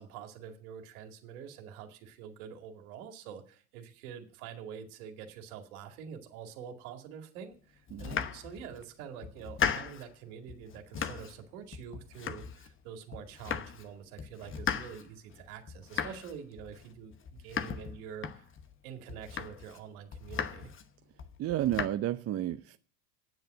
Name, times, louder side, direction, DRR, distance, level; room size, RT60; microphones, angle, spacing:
voice 1, 0.0-18.5 18.8-20.7, right 8 dB, 70° right, 4 dB, 2.3 m, -46 dB
Domestic sounds home sounds, 7.9-8.8 9.2-10.1 10.5-11.4 11.7-12.8 13.1-13.9 14.2-18.7 19.1-19.8 20.1-20.9 21.2-21.9, left 7 dB, 25° left, 1.0 m, -37 dB
voice 2, 21.4-22.8, right 13 dB, 35° right, 9 dB, 0.6 m, -31 dB
9.4 x 7.7 x 7.8 m, 0.43 s
hypercardioid pair, 95°, 45 cm